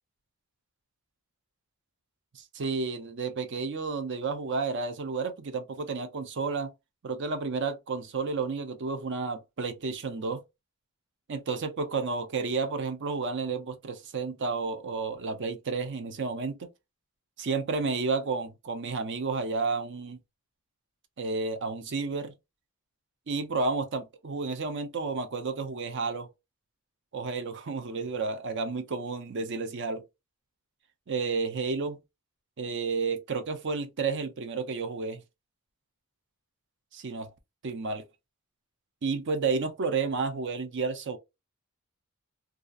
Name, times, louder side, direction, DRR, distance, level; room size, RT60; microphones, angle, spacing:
voice 1, 2.3-6.7 7.0-10.4 11.3-16.6 17.4-20.2 21.2-22.3 23.3-26.3 27.1-30.0 31.1-32.0 32.6-35.2 36.9-37.3 37.6-38.0 39.0-41.2, right 4 dB, 55° right, 0.5 m, -31 dB
2.7 x 2.4 x 2.4 m
head